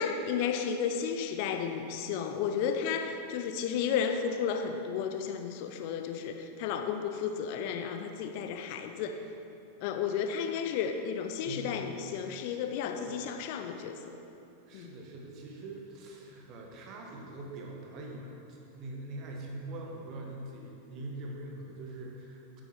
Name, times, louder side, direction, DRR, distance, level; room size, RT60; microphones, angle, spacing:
voice 1, 0.0-9.2 9.8-13.9 14.7-14.9, left 7 dB, 45° left, 6 dB, 0.6 m, -33 dB
voice 2, 11.4-11.8 12.2-12.5 13.1-13.3 14.6-22.6, right 2 dB, 40° right, 0 dB, 1.6 m, -43 dB
10.0 x 7.9 x 4.5 m, 2.7 s
figure-of-eight pair, 90°, 0 cm